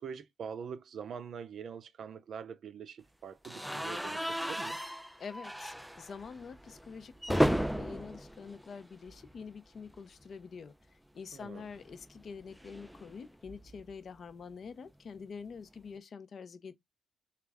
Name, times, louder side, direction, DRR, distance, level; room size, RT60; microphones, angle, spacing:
voice 1, 0.0-4.8 11.3-11.7, right 7 dB, 60° right, 0.5 m, -44 dB
sound 1, 3.4-9.5 9.8-10.0 10.2-10.3 11.6-13.9, equal, ahead, 0.3 m, -35 dB
voice 2, 5.2-16.7, left 5 dB, 50° left, 0.6 m, -46 dB
3.2 x 2.4 x 3.4 m
cardioid pair, 90°, 0 cm